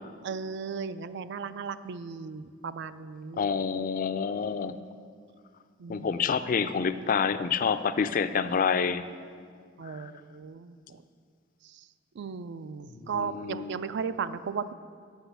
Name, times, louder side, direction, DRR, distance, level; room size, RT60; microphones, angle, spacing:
voice 1, 0.2-3.4 5.8-6.1 9.8-11.0 11.6-11.9 12.1-14.7, right 5 dB, 60° right, 14 dB, 0.4 m, -36 dB
voice 2, 3.4-4.8 5.9-9.0 9.8-10.1 12.9-13.8, left 6 dB, 40° left, 12 dB, 0.4 m, -28 dB
8.0 x 6.1 x 8.0 m, 2.1 s
head